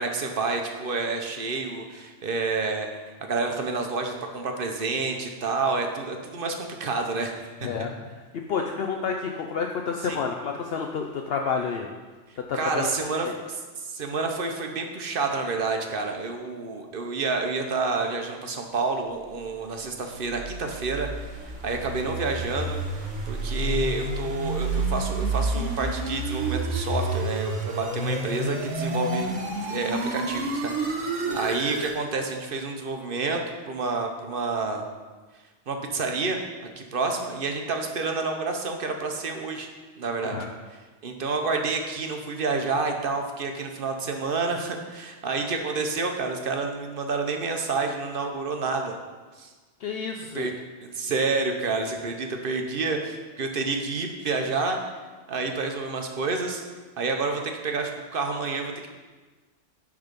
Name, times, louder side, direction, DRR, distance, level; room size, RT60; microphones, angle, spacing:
voice 1, 0.0-2.9 3.3-7.7 10.0-10.2 12.5-22.8 23.3-29.3 29.7-30.7 31.3-34.9 35.7-39.7 40.0-40.4 41.0-49.0 49.4-49.5 50.3-50.5 50.8-54.8 55.3-56.6 57.0-58.9, right 3 dB, 55° right, 4 dB, 0.9 m, -29 dB
voice 2, 7.6-11.9 12.4-13.4 31.2-31.4 40.2-40.5 49.8-50.5, left 5 dB, 65° left, 2 dB, 0.7 m, -30 dB
sound 1, 19.8-32.0, right 2 dB, 90° right, 1.5 m, -29 dB
10.5 x 3.6 x 5.1 m, 1.3 s
omnidirectional pair, 1.2 m